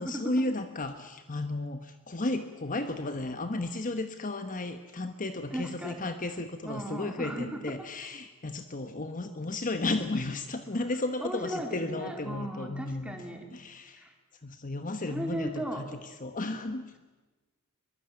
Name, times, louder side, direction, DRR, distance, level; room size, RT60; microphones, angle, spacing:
voice 1, 0.0-13.2 13.5-14.1 14.4-16.9, left 2 dB, 40° left, 9 dB, 1.2 m, -34 dB
voice 2, 5.5-6.1 6.6-7.6 11.2-13.5 15.1-15.9, right 1 dB, 5° right, 3 dB, 3.6 m, -36 dB
22.5 x 22.5 x 9.0 m, 1.2 s
head